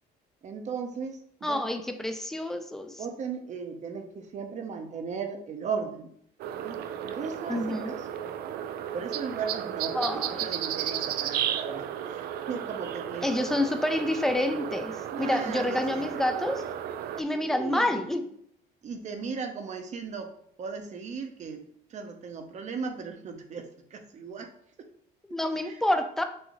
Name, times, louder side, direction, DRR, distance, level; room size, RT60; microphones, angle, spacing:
voice 1, 0.4-1.8 3.0-6.1 6.6-8.1 8.9-13.6 15.1-16.1 17.3-18.1 18.8-20.3 20.6-21.6 21.9-24.5 24.8-24.9 25.6-25.8, right 5 dB, 45° right, 6 dB, 0.8 m, -37 dB
voice 2, 1.4-2.9 7.5-7.9 9.9-10.5 13.2-16.6 17.2-18.2 25.3-26.2, left 1 dB, ahead, 7 dB, 0.5 m, -28 dB
sound 1, 6.4-17.2, right 10 dB, 70° right, 0.4 m, -34 dB
6.3 x 2.7 x 3.0 m, 0.67 s
cardioid pair, 110°, 17 cm